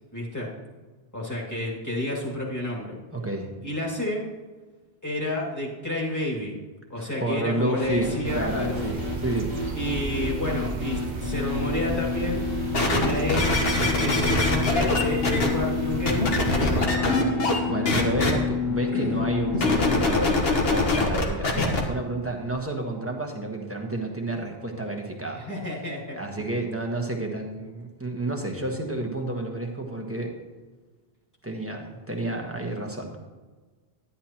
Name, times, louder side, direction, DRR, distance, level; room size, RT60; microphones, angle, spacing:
voice 1, 0.1-0.5 1.1-3.0 3.6-4.3 5.0-6.5 6.9-9.0 9.7-12.5 12.7-13.5 14.0-17.5 18.9-19.3 25.3-26.5, left 1 dB, 15° left, -4 dB, 2.2 m, -30 dB
voice 2, 3.1-3.5 7.0-9.5 17.7-20.4 20.7-25.4 26.1-30.3 31.4-33.2, right 1 dB, 15° right, 1 dB, 1.2 m, -30 dB
sound 1, 7.8-20.0, left 4 dB, 45° left, 3.1 m, -30 dB
sound 2, 8.2-16.9, right 3 dB, 50° right, 0.8 m, -34 dB
sound 3, 12.7-15.5 16.1-17.6 17.9-18.3 19.5-21.8 22.5-22.6, left 2 dB, 70° left, 1.5 m, -23 dB
11.0 x 10.5 x 2.9 m, 1.3 s
omnidirectional pair, 1.1 m